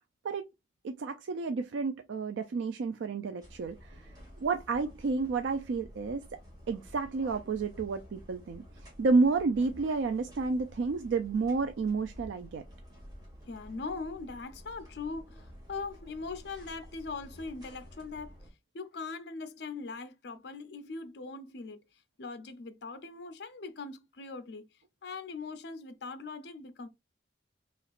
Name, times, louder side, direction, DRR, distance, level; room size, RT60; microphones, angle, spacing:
voice 1, 0.8-4.1 4.4-6.2 6.7-12.6, right 4 dB, 80° right, 0.4 m, -30 dB
sound 1, 3.4-18.5, equal, 20° right, 1.5 m, -51 dB
voice 2, 13.5-18.4 18.7-21.8 22.2-24.7 25.0-26.9, left 4 dB, 65° left, 0.5 m, -41 dB
4.3 x 3.0 x 2.4 m
head